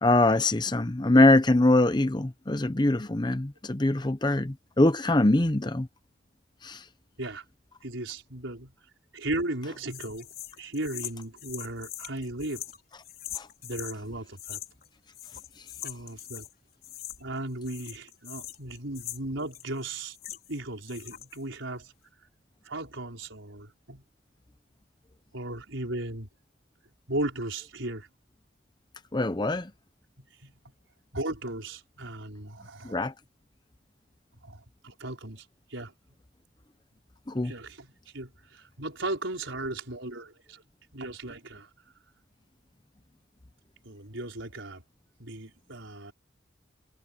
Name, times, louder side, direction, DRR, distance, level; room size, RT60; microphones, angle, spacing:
voice 1, 0.0-5.9 6.6-6.8 13.3-13.5 29.1-29.7 32.8-33.1 37.3-37.5, left 2 dB, 20° left, 0.7 m, -23 dB
voice 2, 7.8-8.7 9.1-10.3 10.6-12.6 13.6-14.6 15.8-16.5 17.2-20.2 20.5-21.9 22.6-24.0 25.3-26.3 27.1-28.1 30.2-30.5 31.1-33.0 34.4-35.4 35.7-35.9 37.4-37.9 38.1-40.6 40.9-41.7 43.8-44.8 45.2-46.1, right 1 dB, 80° right, 5.0 m, -36 dB
sound 1, 9.9-14.0 14.4-14.9 15.1-16.5 16.8-17.4 17.6-20.6 20.9-21.4, left 12 dB, 50° left, 4.6 m, -42 dB
head